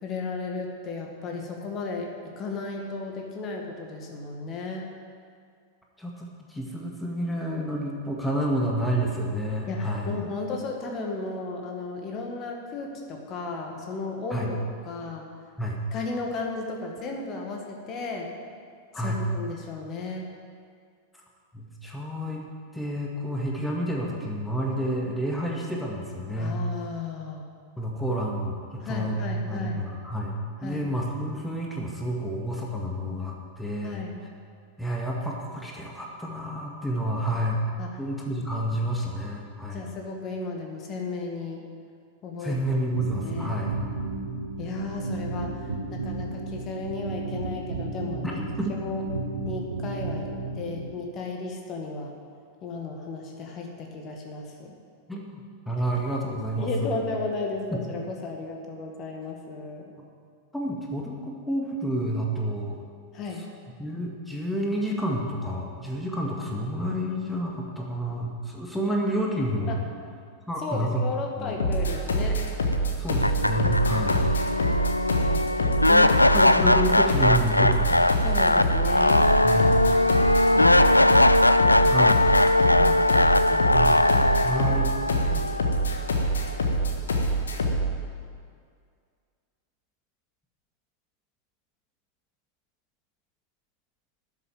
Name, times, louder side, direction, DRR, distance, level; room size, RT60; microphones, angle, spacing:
voice 1, 0.0-2.1 2.4-4.9 9.7-14.6 14.9-15.3 15.9-18.3 19.0-20.3 26.4-27.5 28.8-29.9 30.6-30.9 33.8-34.2 37.8-38.0 39.7-41.7 42.2-42.6 43.2-43.6 44.6-48.4 48.7-49.0 49.5-50.3 50.5-52.1 52.6-54.8 56.6-59.9 63.1-63.4 69.7-69.8 70.6-72.4 73.9-74.1 75.2-75.8 78.2-79.2 80.0-81.2 81.8-82.1 82.7-83.9 85.3-85.6, left 3 dB, 30° left, 1 dB, 1.9 m, -34 dB
voice 2, 6.0-10.1 14.3-14.5 15.6-15.8 18.9-19.2 21.5-22.4 22.7-26.6 27.8-34.0 34.8-37.6 38.0-39.9 42.4-43.8 48.2-48.7 55.1-57.0 57.7-57.8 60.5-62.8 63.8-69.9 70.5-71.0 71.4-71.6 73.0-74.3 75.9-78.3 79.4-79.8 81.9-82.2 83.7-84.9, right 1 dB, 5° left, -2 dB, 1.9 m, -29 dB
sound 1, 42.9-50.9, right 3 dB, 75° right, 1.6 m, -33 dB
sound 2, 71.6-87.9, equal, 70° left, 1.5 m, -25 dB
sound 3, 72.7-72.8 73.2-86.3, left 1 dB, 85° left, 0.4 m, -21 dB
13.0 x 7.5 x 9.6 m, 2.1 s
figure-of-eight pair, 90°, 0 cm